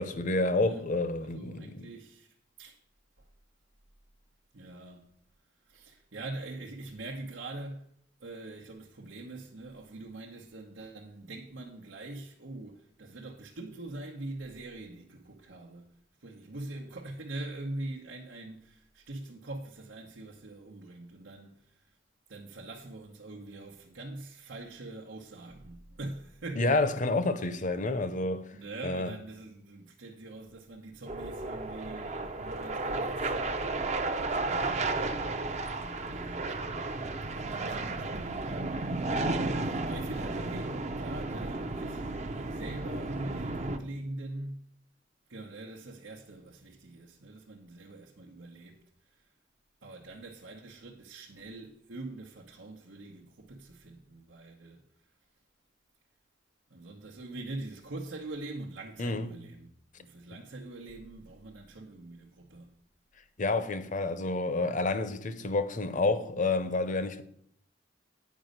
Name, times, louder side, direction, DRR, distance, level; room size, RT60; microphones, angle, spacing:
voice 1, 0.0-1.9 26.6-28.4 28.8-29.1 59.0-59.3 63.4-67.2, left 2 dB, 45° left, 0.7 m, -29 dB
voice 2, 0.5-0.9 1.2-2.8 3.2-3.3 4.5-5.1 5.7-7.9 8.2-22.0 22.3-27.0 28.5-33.8 34.3-36.9 37.2-44.7 45.3-49.3 49.8-54.8 56.7-59.7 60.0-62.8, right 2 dB, 90° right, 1.0 m, -44 dB
sound 1, 31.1-43.8, right 2 dB, 35° right, 0.6 m, -33 dB
9.3 x 5.2 x 6.5 m
head